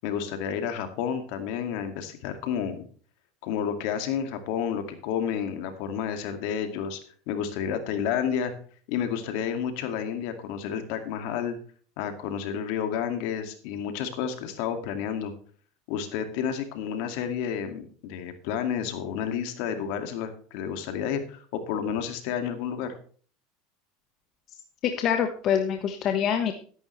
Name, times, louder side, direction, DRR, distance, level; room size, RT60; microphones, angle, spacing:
voice 1, 0.0-2.8 3.4-7.0 7.3-8.5 8.9-11.6 12.0-15.3 15.9-23.0, left 8 dB, 65° left, 7 dB, 2.1 m, -30 dB
voice 2, 24.8-26.5, left 8 dB, 45° left, 6 dB, 1.2 m, -25 dB
13.0 x 10.5 x 3.2 m, 0.43 s
supercardioid pair, 110°, 0 cm